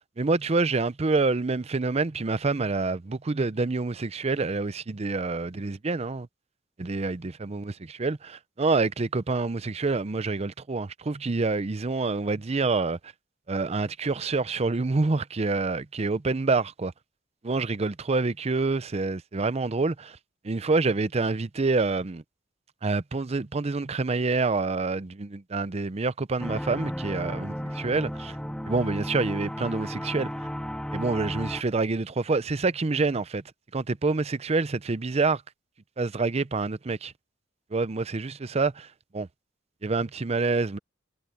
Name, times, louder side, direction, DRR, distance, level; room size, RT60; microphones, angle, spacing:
voice 1, 0.2-6.3 6.8-13.0 13.5-16.9 17.4-20.2 20.4-22.2 22.8-28.4 28.7-30.3 30.9-33.4 33.7-35.4 36.0-37.1 37.7-38.9 39.1-39.3 39.8-40.8, right 3 dB, 35° right, 0.6 m, -27 dB
sound 1, 26.4-31.6, equal, 5° left, 0.7 m, -34 dB
head